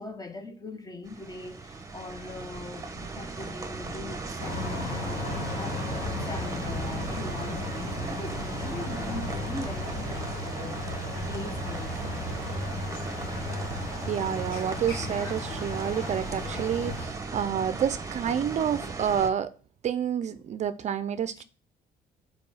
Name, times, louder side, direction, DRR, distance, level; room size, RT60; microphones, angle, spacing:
voice 1, 0.0-6.0 6.2-12.1 21.4-21.5, left 2 dB, 20° left, 1.0 m, -41 dB
sound 1, 1.1-19.3, right 3 dB, 20° right, 1.0 m, -37 dB
sound 2, 4.4-17.1, left 2 dB, 55° left, 2.2 m, -35 dB
voice 2, 14.1-19.5 19.8-21.4, right 8 dB, 45° right, 0.5 m, -29 dB
5.2 x 4.6 x 5.6 m
cardioid pair, 110°, 17 cm